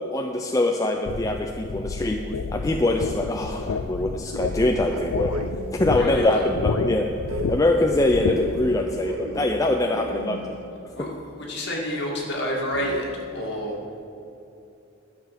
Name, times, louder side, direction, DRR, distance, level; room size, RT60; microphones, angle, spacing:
voice 1, 0.1-2.2 2.5-5.3 5.7-10.6 11.0-11.1, left 1 dB, 15° left, 2 dB, 0.4 m, -23 dB
sound 1, 1.1-8.8, left 4 dB, 85° left, 0.5 m, -30 dB
sound 2, 4.5-5.9 7.3-10.9 12.7-13.0, right 1 dB, 90° right, 0.7 m, -36 dB
voice 2, 5.9-6.4 10.9-13.7, left 1 dB, 50° left, -3 dB, 2.2 m, -29 dB
12.0 x 6.8 x 5.9 m, 2.7 s
head